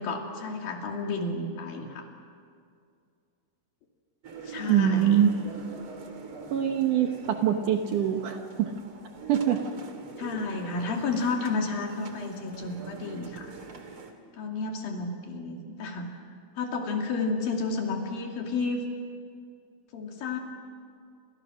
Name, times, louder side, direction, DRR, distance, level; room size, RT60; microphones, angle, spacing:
voice 1, 0.0-2.1 4.4-5.2 10.2-13.5 14.4-16.2 16.6-18.8 19.9-20.4, left 3 dB, 65° left, 2 dB, 4.2 m, -31 dB
sound 1, 4.2-14.1, right 4 dB, 40° right, 2.4 m, -44 dB
voice 2, 4.7-5.3 6.5-8.7 9.3-9.6, right 10 dB, 65° right, 4 dB, 2.3 m, -24 dB
29.5 x 27.5 x 6.3 m, 2.3 s
omnidirectional pair, 4.7 m